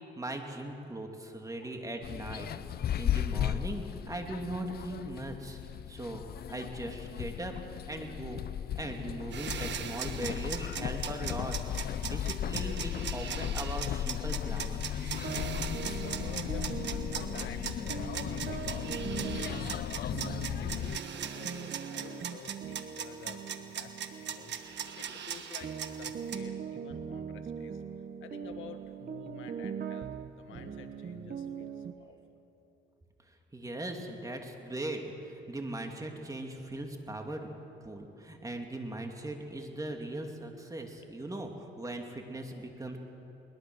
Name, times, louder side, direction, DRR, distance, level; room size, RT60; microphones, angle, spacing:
voice 1, 0.2-2.5 3.0-5.6 5.9-6.2 6.5-8.4 8.7-14.9 33.5-37.5 37.8-43.0, right 1 dB, 15° right, 3 dB, 2.7 m, -39 dB
sound 1, 2.0-21.0, left 10 dB, 50° left, 0.5 m, -36 dB
sound 2, 9.3-26.4, right 8 dB, 65° right, 1.4 m, -39 dB
sound 3, 15.2-25.4 25.6-31.9, right 7 dB, 45° right, 1.1 m, -41 dB
voice 2, 15.8-27.8 28.2-30.1 30.4-32.2, left 7 dB, 85° left, 7 dB, 1.5 m, -50 dB
21.5 x 21.0 x 6.4 m, 2.9 s
cardioid pair, 90°, 20 cm